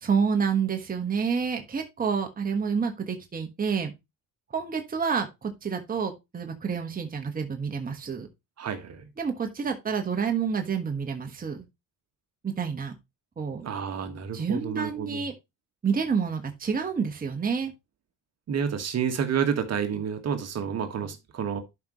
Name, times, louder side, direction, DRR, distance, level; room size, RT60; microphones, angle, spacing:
voice 1, 0.0-3.9 4.5-8.3 9.2-11.6 12.4-12.9 13.4-13.7 14.3-15.3 15.8-17.7, right 6 dB, 25° right, 1.4 m, -28 dB
voice 2, 8.6-9.0 13.6-15.2 18.5-21.6, right 7 dB, 45° right, 1.6 m, -29 dB
11.5 x 5.3 x 3.0 m
cardioid pair, 105°, 34 cm